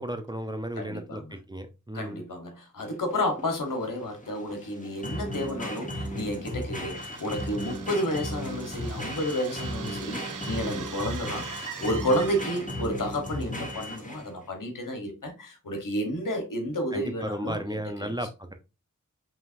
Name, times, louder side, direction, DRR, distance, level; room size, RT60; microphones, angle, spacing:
voice 1, 0.0-2.2 16.9-18.5, equal, 15° right, 0.7 m, -34 dB
voice 2, 0.8-1.4 1.9-18.2, equal, 90° left, 1.2 m, -31 dB
sound 1, 2.8-14.4, equal, 25° left, 1.1 m, -35 dB
sound 2, 7.0-12.9, right 7 dB, 80° right, 0.5 m, -42 dB
5.6 x 2.9 x 2.5 m
cardioid pair, 40°, 31 cm